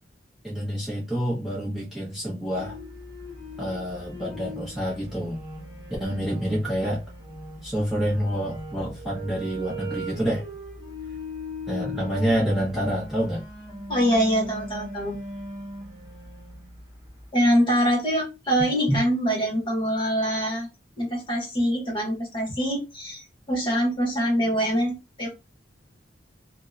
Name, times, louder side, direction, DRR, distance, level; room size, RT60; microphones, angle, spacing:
voice 1, 0.4-2.8 3.6-5.4 6.0-7.0 7.6-10.4 11.7-13.4 18.9-19.0, equal, ahead, 0.6 m, -27 dB
sound 1, 2.5-17.3, equal, 20° right, 1.1 m, -39 dB
voice 2, 13.9-15.2 17.3-20.7 21.0-25.3, equal, 25° left, 0.9 m, -24 dB
2.7 x 2.0 x 2.3 m
head